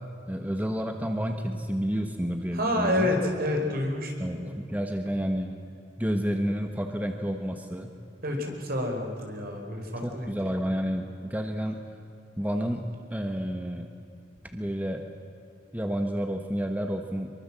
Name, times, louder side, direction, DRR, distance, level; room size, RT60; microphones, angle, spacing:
voice 1, 0.3-3.1 4.2-5.6 6.0-7.9 10.0-11.8 12.4-13.9 14.5-15.0 15.7-17.3, equal, 10° right, 4 dB, 1.2 m, -30 dB
voice 2, 2.5-4.1 8.2-10.3, left 1 dB, 55° right, 2 dB, 5.0 m, -28 dB
24.5 x 23.5 x 7.6 m, 2.6 s
head